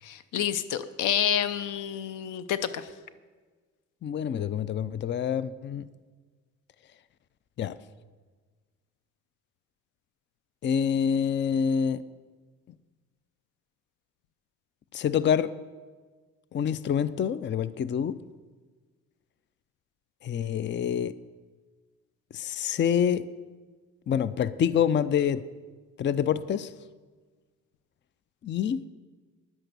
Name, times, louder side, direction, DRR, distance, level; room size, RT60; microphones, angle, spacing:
voice 1, 0.0-2.9, left 10 dB, 85° left, 0.7 m, -29 dB
voice 2, 4.0-5.8 7.6-7.7 10.6-12.0 14.9-15.5 16.5-18.2 20.2-21.1 22.3-23.3 24.1-25.4 26.0-26.7 28.4-28.8, left 8 dB, 40° left, 0.5 m, -26 dB
10.5 x 10.0 x 6.8 m
cardioid pair, 90°, 30 cm